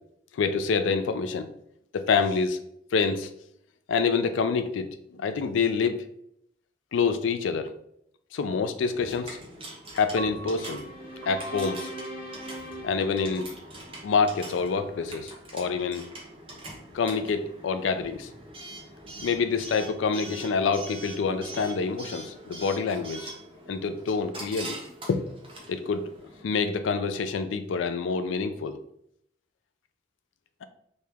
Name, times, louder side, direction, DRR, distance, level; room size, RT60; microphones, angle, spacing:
voice 1, 0.3-1.5 1.9-2.6 2.9-3.3 3.9-6.0 6.9-7.7 8.3-9.4 9.9-10.8 11.3-11.9 12.8-13.5 14.0-16.1 16.9-18.3 19.2-23.3 23.7-24.8 25.1-25.2 25.7-26.1 26.4-28.8, left 5 dB, 85° left, 10 dB, 0.4 m, -27 dB
Coin (dropping) / Alarm, 8.9-26.4, right 2 dB, 30° right, 0.7 m, -44 dB
Piano, 10.2-16.3, right 1 dB, 70° right, 0.4 m, -46 dB
sound 1, 10.6-14.0, right 1 dB, 10° right, 1.3 m, -41 dB
3.1 x 2.8 x 3.4 m, 0.73 s
head